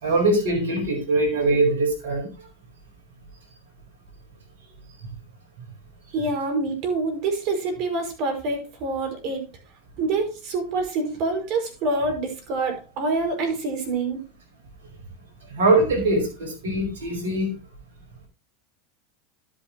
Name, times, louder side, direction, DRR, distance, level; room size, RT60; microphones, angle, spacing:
voice 1, 0.0-2.3 15.5-17.5, right 2 dB, 80° right, 5 dB, 4.9 m, -22 dB
voice 2, 6.1-9.5 10.0-14.2, right 3 dB, 55° right, 4 dB, 5.5 m, -26 dB
12.5 x 8.5 x 2.9 m, 0.30 s
hypercardioid pair, 95°, 0 cm